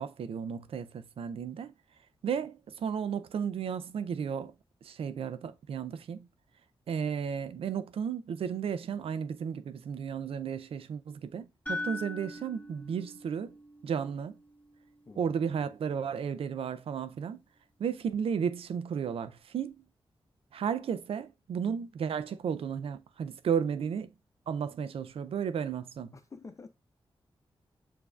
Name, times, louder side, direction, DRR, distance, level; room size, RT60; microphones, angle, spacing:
voice 1, 0.0-1.7 2.2-4.5 4.8-6.3 6.9-13.6 13.8-14.4 15.2-17.4 17.8-19.8 20.5-24.1 24.5-26.1, right 7 dB, 90° right, 0.4 m, -34 dB
sound 1, 11.7-15.7, left 2 dB, 15° left, 1.7 m, -42 dB
voice 2, 15.1-15.7 26.1-26.7, left 4 dB, 35° left, 0.4 m, -49 dB
6.9 x 2.6 x 2.3 m
wide cardioid pair, 130°, 9 cm